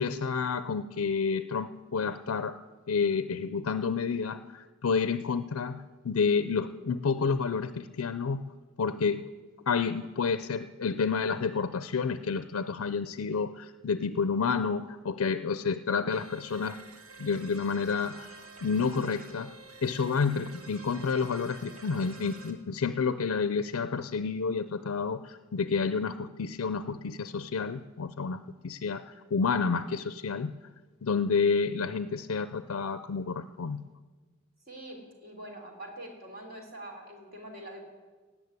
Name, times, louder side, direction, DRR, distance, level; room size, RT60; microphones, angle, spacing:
voice 1, 0.0-2.6 2.9-8.4 8.8-9.2 9.7-16.8 17.2-19.5 19.8-30.5 31.0-33.8, left 5 dB, 70° left, 12 dB, 0.5 m, -30 dB
sound 1, 16.1-22.5, right 3 dB, 70° right, 2.0 m, -49 dB
voice 2, 34.7-37.8, right 1 dB, 45° right, 1 dB, 3.3 m, -44 dB
17.5 x 7.2 x 9.5 m, 1.4 s
head